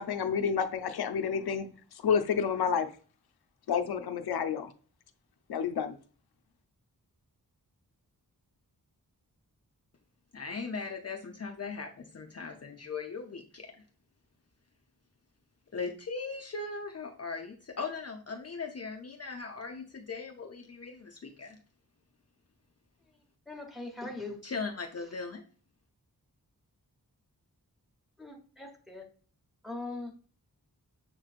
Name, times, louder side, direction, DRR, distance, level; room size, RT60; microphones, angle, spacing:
voice 1, 0.0-1.7 2.0-2.9 3.7-4.7 5.5-6.0, left 7 dB, 90° left, 0.5 m, -29 dB
voice 2, 10.3-13.7 15.7-21.6 24.4-25.4, left 4 dB, 40° left, 0.5 m, -39 dB
voice 3, 23.5-24.5 28.2-29.1 29.6-30.1, left 2 dB, ahead, 1.0 m, -41 dB
6.6 x 3.0 x 2.4 m
wide cardioid pair, 105°, 37 cm